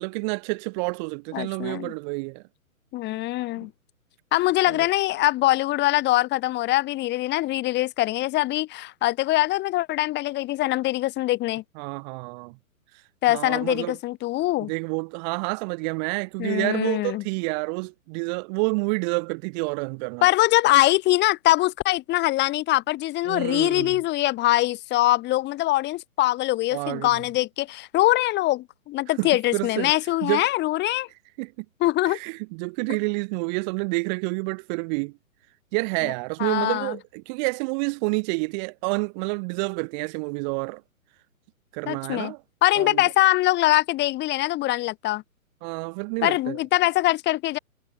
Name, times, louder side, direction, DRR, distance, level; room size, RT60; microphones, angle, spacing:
voice 1, 0.0-2.4 4.7-4.9 11.8-12.5 13.3-14.0 14.6-20.3 23.3-24.0 26.7-27.1 29.2-29.9 30.2-30.5 31.4-31.7 32.1-35.1 35.7-40.8 41.7-42.4 42.8-43.0 45.6-46.6, right 33 dB, 30° right, 1.9 m, -29 dB
voice 2, 1.3-1.9 2.9-3.7 4.3-11.6 13.2-14.7 16.4-17.2 20.2-31.1 31.8-32.2 36.4-37.0 41.9-42.3 42.6-45.2 46.2-47.6, left 17 dB, 25° left, 4.7 m, -23 dB
hypercardioid pair, 130°, 42 cm